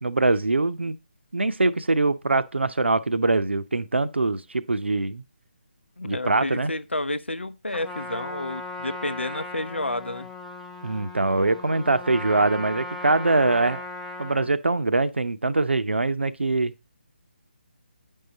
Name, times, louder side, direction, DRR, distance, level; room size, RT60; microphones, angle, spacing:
voice 1, 0.0-1.0 1.3-5.2 6.0-6.7 10.8-13.8 14.2-16.7, right 2 dB, 75° right, 0.7 m, -23 dB
voice 2, 6.0-10.3, left 1 dB, 85° left, 0.8 m, -30 dB
Trumpet, 7.7-14.5, left 2 dB, ahead, 0.6 m, -37 dB
9.2 x 5.6 x 4.0 m
figure-of-eight pair, 150°, 6 cm